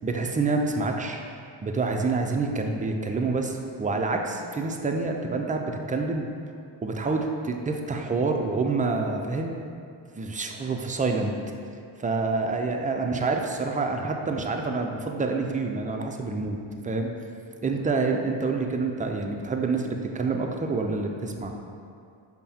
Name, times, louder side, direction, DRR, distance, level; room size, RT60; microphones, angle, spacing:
voice 1, 0.0-1.2 1.6-6.3 6.8-9.6 10.2-11.3 12.0-16.6 16.8-17.1 17.6-21.5, right 3 dB, 20° right, 2 dB, 0.3 m, -27 dB
5.5 x 2.1 x 4.2 m, 2.4 s
cardioid pair, 65°, 49 cm